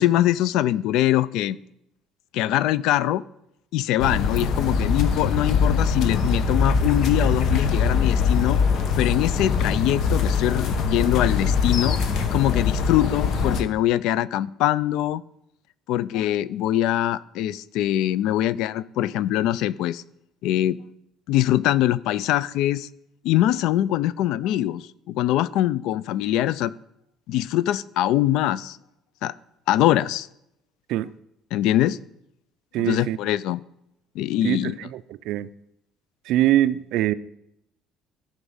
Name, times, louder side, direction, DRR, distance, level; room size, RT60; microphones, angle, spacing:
voice 1, 0.0-1.6 2.3-3.2 3.7-8.6 9.0-12.0 12.3-15.2 15.9-20.0 20.4-20.8 21.3-22.9 23.2-26.7 27.3-28.8 29.2-29.3 29.7-30.3 31.5-32.0 32.8-33.6 34.2-34.8, left 13 dB, 70° left, 0.3 m, -23 dB
sound 1, 4.0-13.6, left 5 dB, 50° left, 0.9 m, -22 dB
voice 2, 32.7-33.2 34.4-35.0 35.3-35.5 36.3-37.1, right 13 dB, 65° right, 0.4 m, -23 dB
13.5 x 5.0 x 5.5 m
cardioid pair, 160°, 0 cm